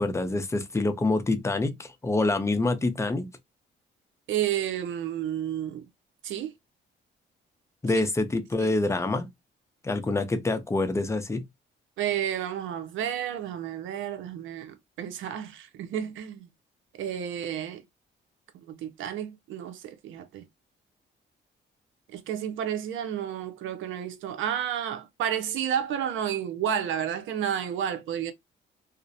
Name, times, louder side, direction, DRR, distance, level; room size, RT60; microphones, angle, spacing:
voice 1, 0.0-3.3 7.8-9.3 9.8-11.4, left 2 dB, 15° left, 0.5 m, -26 dB
voice 2, 4.3-5.9 6.2-6.5 7.9-8.1 8.6-8.7 10.1-10.2 12.0-16.5 17.0-17.8 18.7-20.5 22.1-28.3, right 9 dB, 80° right, 0.5 m, -31 dB
2.4 x 2.0 x 2.6 m
cardioid pair, 90°, 20 cm